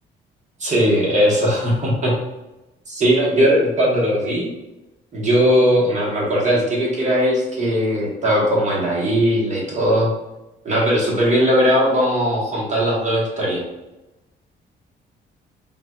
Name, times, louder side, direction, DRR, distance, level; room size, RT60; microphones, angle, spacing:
voice 1, 0.6-2.2 2.9-4.5 5.1-10.1 10.6-13.6, equal, 35° right, -4 dB, 1.4 m, -18 dB
3.9 x 2.7 x 2.3 m, 1.0 s
cardioid pair, 90°, 20 cm